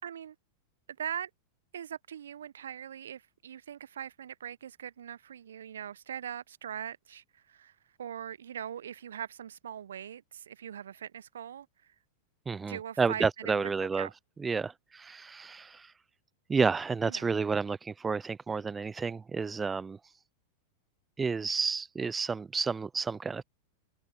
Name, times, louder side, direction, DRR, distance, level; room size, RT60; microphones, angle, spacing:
voice 1, 0.0-0.3 1.0-1.3 1.7-11.9 12.7-13.7 14.0-14.1 17.1-17.3, right 9 dB, 70° right, 1.2 m, -41 dB
voice 2, 12.5-14.1 14.4-15.9 16.5-20.0 21.2-23.4, right 5 dB, 15° right, 0.6 m, -31 dB
figure-of-eight pair, 90°, 0 cm